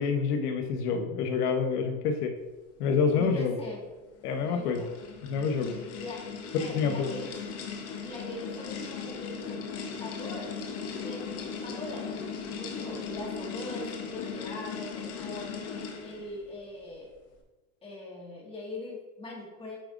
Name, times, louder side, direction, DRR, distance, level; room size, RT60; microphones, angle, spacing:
voice 1, 0.0-2.3 2.8-3.6 4.2-4.9 5.2-5.8 6.7-7.1, left 5 dB, 80° left, 6 dB, 0.9 m, -27 dB
voice 2, 3.2-3.8 4.4-4.9 5.9-6.2 6.6-7.3 8.0-10.5 11.0-12.2 12.6-15.5 16.0-17.1 17.8-19.8, left 2 dB, 10° left, -3 dB, 1.7 m, -41 dB
sound 1, 4.2-16.4, left 6 dB, 30° left, 0.8 m, -38 dB
8.8 x 4.9 x 2.5 m, 1.1 s
supercardioid pair, 145°, 45 cm